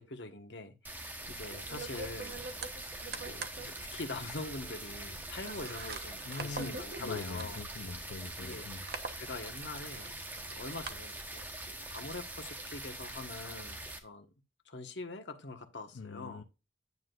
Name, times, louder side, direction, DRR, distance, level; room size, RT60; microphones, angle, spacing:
voice 1, 0.0-2.4 3.1-7.6 8.4-8.7 9.2-10.2 10.5-14.3 14.6-16.4, left 2 dB, 60° left, 1.3 m, -44 dB
sound 1, 0.8-14.0, right 1 dB, 10° right, 1.1 m, -44 dB
sound 2, 1.2-10.9, right 3 dB, 50° right, 1.0 m, -46 dB
voice 2, 6.2-8.9 15.9-16.4, left 4 dB, 85° left, 0.6 m, -42 dB
9.5 x 7.4 x 2.5 m
head